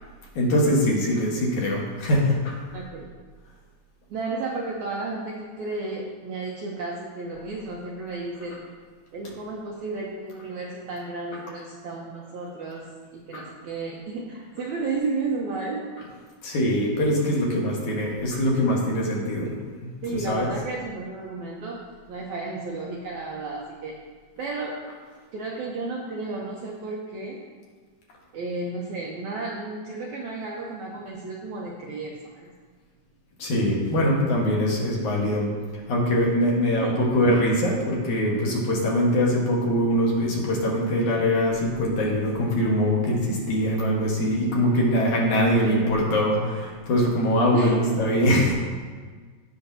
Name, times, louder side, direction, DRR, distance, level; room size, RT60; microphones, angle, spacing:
voice 1, 0.4-2.6 13.3-13.4 16.4-19.5 19.8-20.5 33.4-35.5 35.9-48.5, equal, 60° left, -3 dB, 2.6 m, -23 dB
voice 2, 2.7-3.1 4.1-8.6 9.1-12.8 13.1-15.9 20.0-23.9 24.4-24.8 25.3-27.4 28.3-32.5 36.7-37.1 45.6-46.0 47.5-47.9, right 3 dB, 75° right, -3 dB, 1.8 m, -33 dB
16.0 x 5.7 x 2.7 m, 1.5 s
omnidirectional pair, 4.2 m